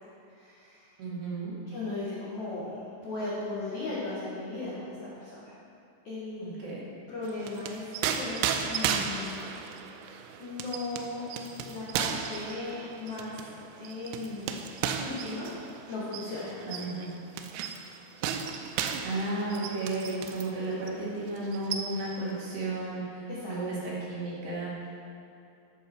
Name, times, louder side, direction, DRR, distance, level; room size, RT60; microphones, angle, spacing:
voice 1, 0.4-0.9 1.7-5.5 6.0-6.6 7.1-9.5 10.4-11.2 11.6-13.4 13.7-14.6 15.0-15.5 15.9-16.6 23.3-23.5, left 2 dB, 80° left, -8 dB, 1.6 m, -37 dB
voice 2, 1.0-1.5 6.4-6.9 16.7-17.1 19.0-24.7, right 2 dB, 60° right, -7 dB, 3.7 m, -33 dB
sound 1, 7.3-20.6 20.9-21.0 21.4-22.2, right 7 dB, 85° right, 2.8 m, -35 dB
13.0 x 6.2 x 4.5 m, 2.6 s
omnidirectional pair, 5.9 m